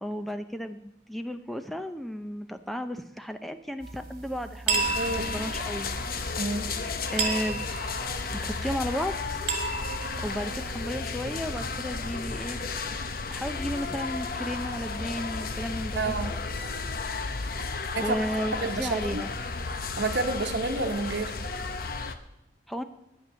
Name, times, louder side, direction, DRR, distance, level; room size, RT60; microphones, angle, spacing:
voice 1, 0.0-5.0 5.3-5.9 7.1-7.6 8.4-9.4 10.2-12.6 12.9-16.4 18.0-19.3 22.7-22.8, equal, ahead, 8 dB, 0.5 m, -34 dB
sound 1, 3.8-11.0, right 4 dB, 50° right, 1.9 m, -34 dB
sound 2, 4.7-22.1, left 4 dB, 55° left, 0.8 m, -33 dB
voice 2, 4.9-5.3 6.4-6.7 16.0-16.3 17.9-18.2 18.5-19.2 19.9-21.4, right 3 dB, 80° right, 4 dB, 1.1 m, -29 dB
9.7 x 9.7 x 6.8 m, 0.84 s
head